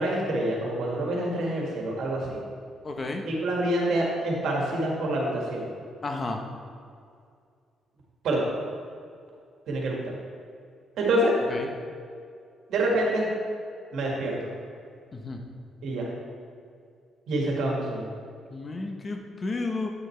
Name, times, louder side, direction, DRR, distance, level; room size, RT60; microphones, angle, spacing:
voice 1, 0.0-2.4 3.3-5.7 8.2-8.4 9.7-10.1 11.0-11.3 12.7-13.3 13.9-14.5 15.8-16.1 17.3-18.1, right 1 dB, 75° right, -2 dB, 1.9 m, -26 dB
voice 2, 2.8-3.3 6.0-6.4 11.5-11.7 15.1-15.4 18.5-19.9, left 3 dB, 35° left, 3 dB, 0.9 m, -32 dB
8.9 x 6.4 x 3.4 m, 2.3 s
cardioid pair, 90°, 0 cm